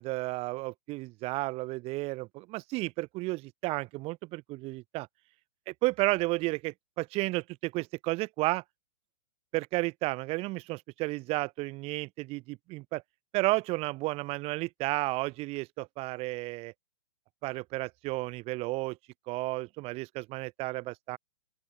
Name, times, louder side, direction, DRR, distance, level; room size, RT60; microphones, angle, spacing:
voice 1, 0.0-5.1 5.7-8.6 9.5-13.0 13.3-16.7 17.4-19.0 19.3-21.2, right 22 dB, 35° right, 5.3 m, -32 dB
open air
hypercardioid pair, 125°, 17 cm